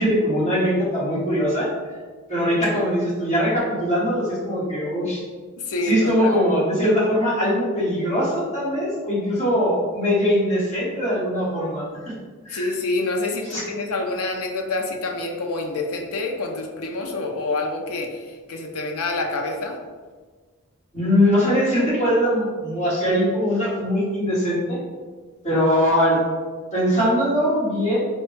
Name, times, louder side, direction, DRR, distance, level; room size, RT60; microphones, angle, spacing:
voice 1, 0.0-1.7 2.3-5.2 5.8-11.8 12.4-12.7 13.5-13.6 20.9-24.8 25.4-26.2 26.7-28.1, equal, 30° left, -9 dB, 1.4 m, -21 dB
voice 2, 5.6-6.3 12.5-19.8, left 2 dB, 80° left, 2 dB, 0.5 m, -27 dB
4.0 x 2.1 x 3.2 m, 1.4 s
head